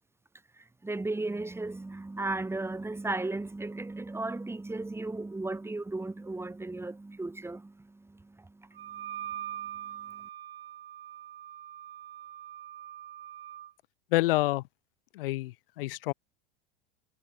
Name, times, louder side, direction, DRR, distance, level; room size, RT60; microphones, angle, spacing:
voice 1, 0.5-10.3, right 2 dB, 10° right, 4.8 m, -36 dB
Wind instrument woodwind instrument, 8.7-13.7, right 12 dB, 85° right, 5.8 m, -42 dB
voice 2, 14.1-14.6 15.2-16.1, left 19 dB, 70° left, 3.6 m, -28 dB
hypercardioid pair, 110°, 29 cm